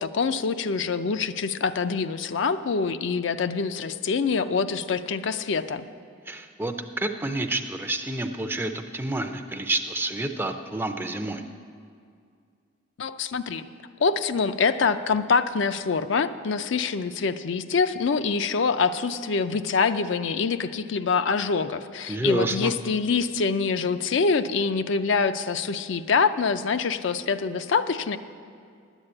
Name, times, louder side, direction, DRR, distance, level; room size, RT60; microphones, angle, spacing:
voice 1, 0.0-5.8 13.0-13.7 14.0-28.2, left 5 dB, 60° left, 10 dB, 0.4 m, -25 dB
voice 2, 6.3-11.4 22.1-22.7, right 2 dB, 10° right, 7 dB, 0.5 m, -29 dB
10.5 x 8.2 x 8.7 m, 2.3 s
head